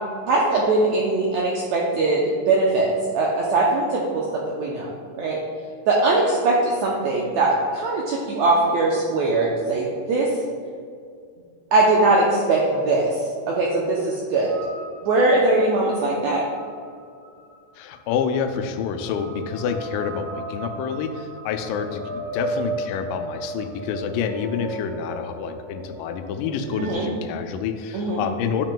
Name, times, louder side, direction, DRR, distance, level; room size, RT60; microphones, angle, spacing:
voice 1, 0.2-4.9 5.1-5.4 5.9-10.3 11.7-13.1 13.5-14.5 15.0-16.4 26.8-27.1 27.9-28.2, right 2 dB, 80° right, -3 dB, 1.6 m, -21 dB
sound 1, 14.5-26.9, right 1 dB, 65° right, 1.9 m, -36 dB
voice 2, 17.8-28.7, left 6 dB, 80° left, 7 dB, 2.1 m, -28 dB
9.4 x 6.0 x 2.2 m, 2.2 s
omnidirectional pair, 3.9 m